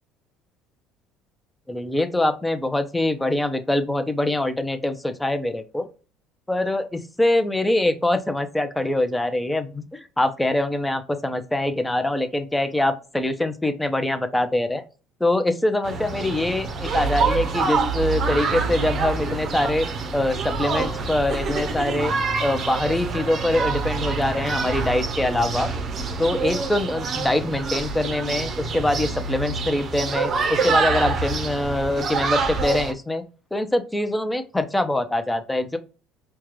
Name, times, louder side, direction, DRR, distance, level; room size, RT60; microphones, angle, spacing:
voice 1, 1.7-5.9 6.5-14.8 15.2-19.9 20.1-22.1 22.4-25.7 26.2-33.2 33.5-35.8, left 1 dB, 10° left, 9 dB, 0.6 m, -24 dB
sound 1, 15.8-32.9, right 4 dB, 45° right, 0.6 m, -26 dB
4.5 x 2.2 x 3.0 m, 0.34 s
hypercardioid pair, 70°, 0 cm